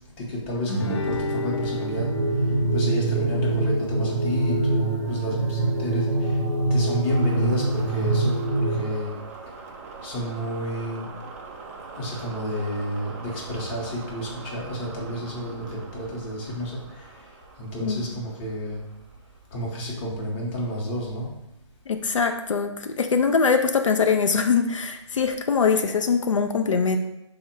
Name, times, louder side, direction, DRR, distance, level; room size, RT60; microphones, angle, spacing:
voice 1, 0.2-2.1 2.3-6.4 6.7-9.2 10.0-11.1 12.0-18.8 19.5-21.3, equal, 20° left, -3 dB, 0.8 m, -31 dB
Guitar, 0.7-5.7, left 1 dB, 65° left, 0.8 m, -33 dB
sound 1, 1.0-19.5, right 4 dB, 30° right, 0.4 m, -42 dB
sound 2, 2.0-8.8, right 2 dB, 75° right, 0.7 m, -24 dB
voice 2, 21.9-27.0, left 5 dB, 85° left, 5 dB, 0.4 m, -22 dB
3.6 x 2.1 x 4.3 m, 0.86 s
figure-of-eight pair, 145°, 16 cm